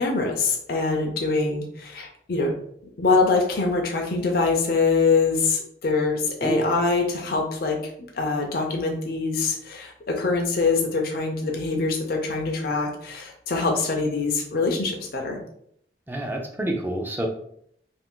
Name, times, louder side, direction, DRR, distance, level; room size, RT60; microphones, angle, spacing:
voice 1, 0.0-2.5 3.0-7.8 8.1-15.4, left 4 dB, 55° left, 0 dB, 0.5 m, -24 dB
voice 2, 16.1-17.3, right 1 dB, 10° right, 2 dB, 0.4 m, -27 dB
2.5 x 2.5 x 3.6 m, 0.69 s
head